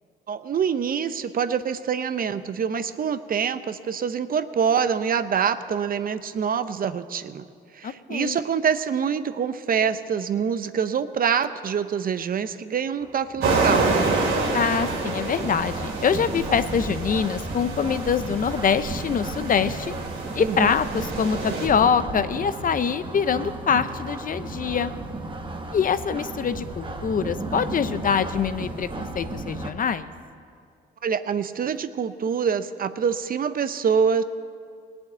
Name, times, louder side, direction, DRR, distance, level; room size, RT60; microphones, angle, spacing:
voice 1, 0.3-7.5 7.7-13.9 20.5-20.7 31.0-34.2, right 7 dB, 45° right, 12 dB, 0.7 m, -25 dB
voice 2, 7.8-8.4 14.5-19.9 20.3-24.9 25.7-30.1, left 7 dB, 45° left, 12 dB, 0.6 m, -24 dB
sound 1, 13.0-29.7, right 2 dB, 25° right, 1.3 m, -34 dB
sound 2, 13.4-21.7, right 3 dB, 85° right, 2.5 m, -28 dB
18.5 x 7.1 x 9.1 m, 2.2 s
cardioid pair, 90°, 20 cm